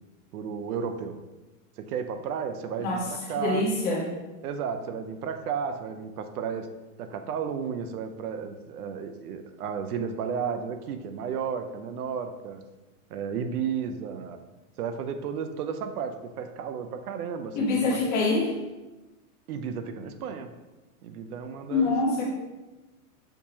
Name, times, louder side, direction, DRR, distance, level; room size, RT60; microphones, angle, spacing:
voice 1, 0.3-1.2 1.8-3.7 4.4-6.7 7.0-12.6 13.1-14.4 14.8-18.0 19.5-20.5 21.0-21.9, right 7 dB, 90° right, 7 dB, 0.6 m, -33 dB
voice 2, 3.4-4.0 17.6-18.5 21.7-22.2, left 3 dB, 20° left, -3 dB, 0.7 m, -25 dB
6.7 x 2.8 x 2.8 m, 1.1 s
supercardioid pair, 165°, 44 cm